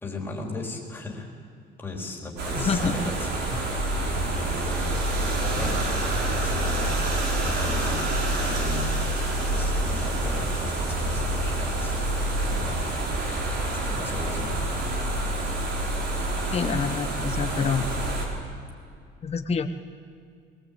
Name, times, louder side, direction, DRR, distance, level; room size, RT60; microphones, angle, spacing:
voice 1, 0.0-1.3 1.8-6.0 6.3-8.0 8.4-12.0 12.4-12.9 13.6-14.5, left 3 dB, 10° left, -2 dB, 4.0 m, -36 dB
sound 1, 2.4-18.2, right 2 dB, 60° right, 4.8 m, -27 dB
voice 2, 2.6-3.0 16.5-17.9 19.2-19.7, left 6 dB, 30° left, 8 dB, 1.3 m, -27 dB
22.5 x 20.5 x 8.5 m, 2.3 s
cardioid pair, 145°, 20 cm